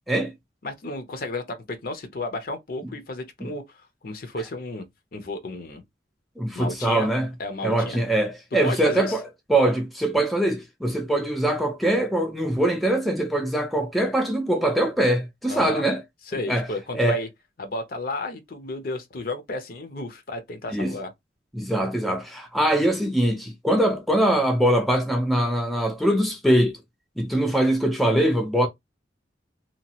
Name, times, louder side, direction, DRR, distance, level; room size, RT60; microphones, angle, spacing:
voice 1, 0.6-5.8 6.5-7.1 7.4-8.0 8.6-9.2 15.5-15.8 16.3-17.3 17.6-21.1, left 2 dB, 55° left, 0.6 m, -33 dB
voice 2, 6.4-7.3 7.6-9.2 9.5-16.0 16.3-16.7 16.9-17.2 20.7-21.0 21.5-26.8 27.2-28.7, right 1 dB, ahead, 0.4 m, -22 dB
2.9 x 2.3 x 2.8 m
head